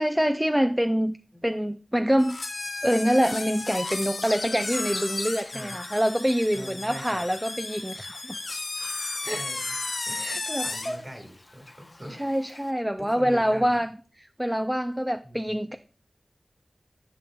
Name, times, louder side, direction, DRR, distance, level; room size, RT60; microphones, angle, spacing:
voice 1, 0.0-1.2 1.4-2.4 2.8-8.4 9.2-9.4 10.1-11.0 12.1-13.9 14.2-15.8, equal, 5° right, 0.3 m, -25 dB
sound 1, 2.2-11.0, left 3 dB, 75° left, 0.7 m, -34 dB
Chirp tweet, 4.2-12.7, left 2 dB, 40° left, 0.8 m, -43 dB
voice 2, 5.5-6.0 6.5-7.2 9.2-10.2 10.6-12.2 13.0-13.8 15.2-15.6, equal, 25° right, 1.6 m, -42 dB
10.5 x 5.5 x 2.2 m
wide cardioid pair, 65°, 0 cm